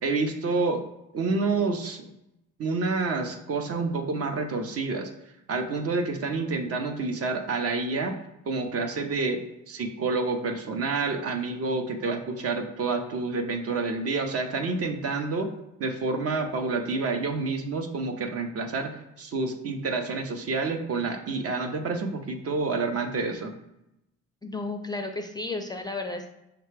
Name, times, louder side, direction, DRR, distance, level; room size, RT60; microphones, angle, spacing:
voice 1, 0.0-0.9 1.1-2.1 2.6-5.1 5.5-8.2 8.5-9.4 9.7-15.5 15.8-18.9 19.2-23.5, right 3 dB, 50° right, 6 dB, 0.7 m, -28 dB
voice 2, 24.4-26.3, left 2 dB, 15° left, 4 dB, 0.4 m, -33 dB
5.8 x 2.2 x 3.2 m, 0.87 s
cardioid pair, 90°, 30 cm